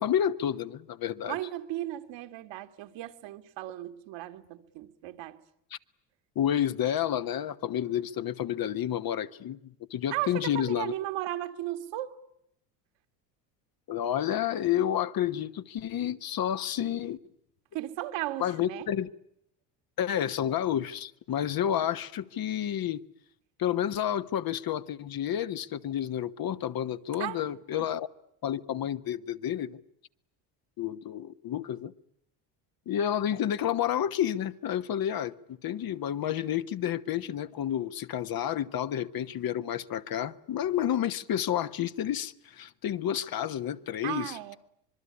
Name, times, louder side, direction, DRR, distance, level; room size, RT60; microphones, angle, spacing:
voice 1, 0.0-1.4 6.3-10.9 13.9-17.2 18.4-19.1 20.0-23.0 23.6-28.1 28.4-29.8 30.8-31.9 32.9-44.6, left 10 dB, 45° left, 1.3 m, -30 dB
voice 2, 1.3-5.4 10.1-12.2 17.7-18.9 27.2-27.9 44.0-44.6, right 15 dB, 60° right, 2.1 m, -36 dB
25.5 x 22.0 x 9.8 m
hypercardioid pair, 75°, 48 cm